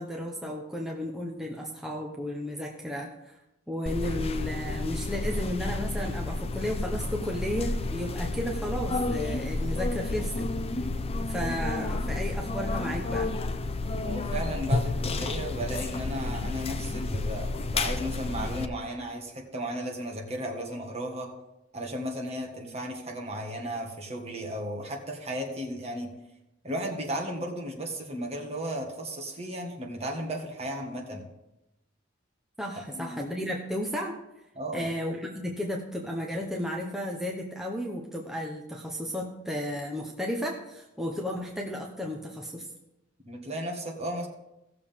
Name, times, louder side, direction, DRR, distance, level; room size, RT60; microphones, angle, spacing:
voice 1, 0.0-3.4 3.7-10.5 11.2-13.3 32.6-34.2 34.7-42.7, equal, ahead, -1 dB, 0.9 m, -33 dB
sound 1, 3.9-18.7, left 2 dB, 30° left, 0.5 m, -31 dB
voice 2, 14.0-21.3 21.7-26.1 26.6-31.3 32.9-33.2 34.5-34.9 43.2-44.3, equal, 35° right, 1 dB, 1.7 m, -35 dB
16.5 x 6.8 x 3.6 m, 0.92 s
head